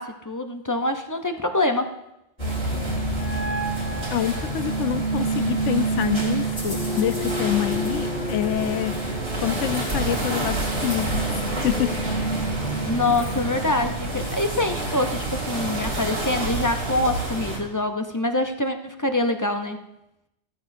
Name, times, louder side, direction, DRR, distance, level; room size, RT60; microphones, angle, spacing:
voice 1, 0.0-1.9 12.5-19.8, left 2 dB, 20° left, 6 dB, 0.5 m, -25 dB
sound 1, 2.4-13.5, right 2 dB, 45° left, 2.9 m, -29 dB
sound 2, 2.4-17.6, right 2 dB, 90° right, 3.4 m, -29 dB
voice 2, 4.1-11.2 11.6-11.9 12.2-12.3, left 11 dB, 90° left, 12 dB, 1.0 m, -27 dB
15.0 x 13.5 x 2.6 m, 0.87 s
omnidirectional pair, 1.2 m